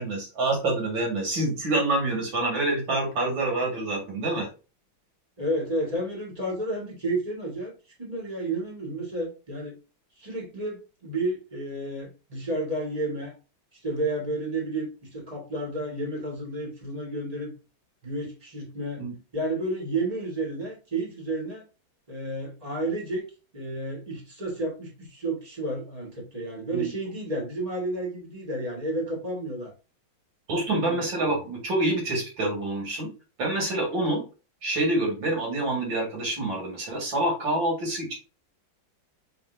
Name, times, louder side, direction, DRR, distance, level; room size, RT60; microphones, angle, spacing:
voice 1, 0.0-4.5 19.0-19.1 26.7-26.9 30.5-33.1 33.4-34.2 34.6-38.2, right 2 dB, 70° right, 1 dB, 2.5 m, -27 dB
voice 2, 5.4-7.7 8.0-9.7 10.2-13.3 13.7-17.5 18.0-19.0 19.3-21.6 22.1-23.3 23.5-29.7 30.7-31.4, right 2 dB, 20° right, -1 dB, 1.6 m, -31 dB
5.4 x 3.3 x 2.6 m, 0.31 s
omnidirectional pair, 2.2 m